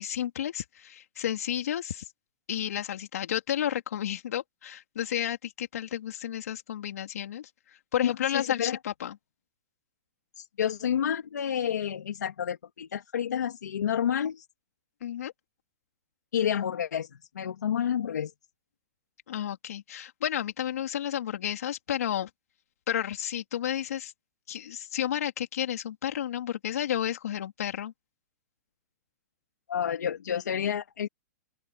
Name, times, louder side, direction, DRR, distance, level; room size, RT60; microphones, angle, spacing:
voice 1, 0.0-2.1 2.5-7.5 7.9-9.2 15.0-15.3 19.3-22.3 22.9-24.1 24.5-27.9, left 10 dB, 65° left, 4.0 m, -31 dB
voice 2, 8.0-8.8 10.4-14.4 16.3-18.3 29.7-31.1, left 9 dB, 90° left, 3.1 m, -29 dB
open air
hypercardioid pair, 170°, 9 cm